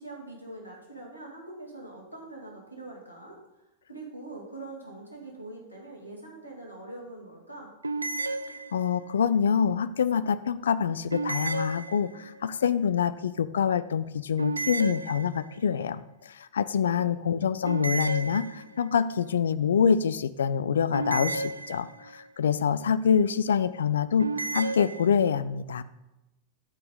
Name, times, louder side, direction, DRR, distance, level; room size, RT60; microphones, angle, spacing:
voice 1, 0.0-3.4 3.9-7.7 16.8-17.2, right 2 dB, 85° left, -1 dB, 2.2 m, -43 dB
sound 1, 7.8-9.1 11.1-12.4 14.4-15.7 17.7-19.0 20.9-22.2 24.2-25.1, right 3 dB, 80° right, 0.4 m, -33 dB
voice 2, 8.7-25.8, left 7 dB, 65° left, 16 dB, 0.3 m, -26 dB
13.0 x 4.8 x 4.0 m, 0.96 s
figure-of-eight pair, 90°, 0 cm